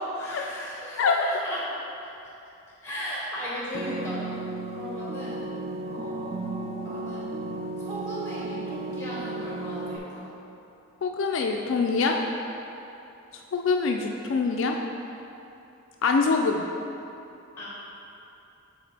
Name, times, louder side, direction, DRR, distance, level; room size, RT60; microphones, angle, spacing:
voice 1, 0.1-1.7 2.8-4.2 4.8-5.4 5.9-7.3 7.8-10.3 17.6-17.7, equal, 15° left, -7 dB, 1.5 m, -36 dB
sound 1, 3.7-10.0, right 2 dB, 30° right, 0.3 m, -34 dB
voice 2, 11.0-12.2 13.5-14.8 16.0-16.6, left 4 dB, 70° left, 2 dB, 0.3 m, -24 dB
7.8 x 3.9 x 3.3 m, 2.9 s
head